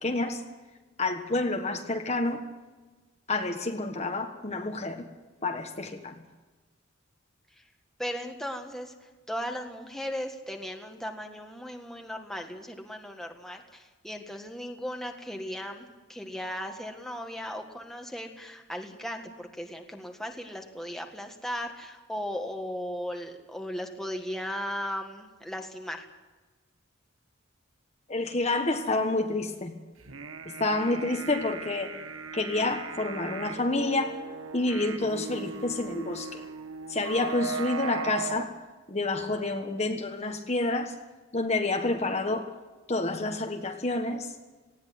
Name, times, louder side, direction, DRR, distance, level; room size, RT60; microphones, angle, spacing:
voice 1, 0.0-0.4 1.0-2.4 3.3-5.1 5.4-6.2 28.1-29.8 30.4-31.9 32.3-34.2 34.5-36.4 36.9-38.5 38.9-40.9 41.3-42.5 42.9-44.3, left 2 dB, 30° left, 4 dB, 1.5 m, -29 dB
voice 2, 8.0-8.9 9.3-26.0, equal, ahead, 3 dB, 1.7 m, -37 dB
sound 1, 30.0-38.5, right 5 dB, 80° right, 1.6 m, -38 dB
19.5 x 17.0 x 9.5 m, 1.2 s
head